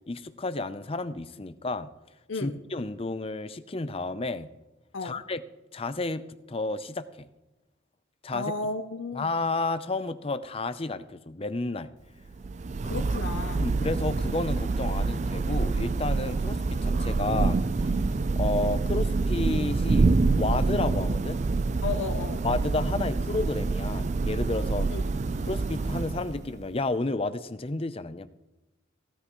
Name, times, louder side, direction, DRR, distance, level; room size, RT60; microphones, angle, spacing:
voice 1, 0.1-1.9 2.4-4.5 5.0-5.4 5.7-7.3 8.2-8.5 9.1-11.9 13.5-17.9 18.4-21.4 22.4-24.9 25.4-28.3, left 2 dB, 30° left, 11 dB, 0.6 m, -31 dB
voice 2, 2.3-2.6 4.9-5.2 8.3-9.3 12.8-13.6 21.8-22.4 24.8-25.0, left 3 dB, 70° left, 7 dB, 0.7 m, -33 dB
Thunder / Rain, 12.3-26.6, right 3 dB, 35° right, 0.4 m, -27 dB
17.5 x 13.0 x 3.1 m, 1.0 s
head